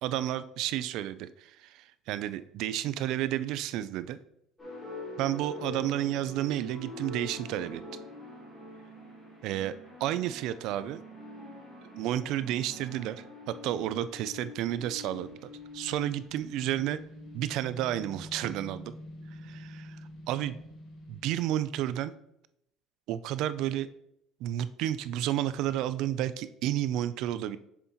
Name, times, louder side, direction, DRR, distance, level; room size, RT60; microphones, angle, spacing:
voice 1, 0.0-4.2 5.2-7.8 9.4-9.7 10.0-11.0 11.9-17.0 17.3-18.9 19.4-20.0 20.3-20.6 21.1-22.1 23.1-23.9 24.4-27.6, right 12 dB, 50° right, 14 dB, 0.3 m, -31 dB
sound 1, 4.6-17.9, left 2 dB, 5° left, 2.8 m, -45 dB
sound 2, 15.1-21.5, left 1 dB, 35° left, 1.6 m, -47 dB
7.2 x 6.9 x 2.9 m, 0.79 s
cardioid pair, 170°, 0 cm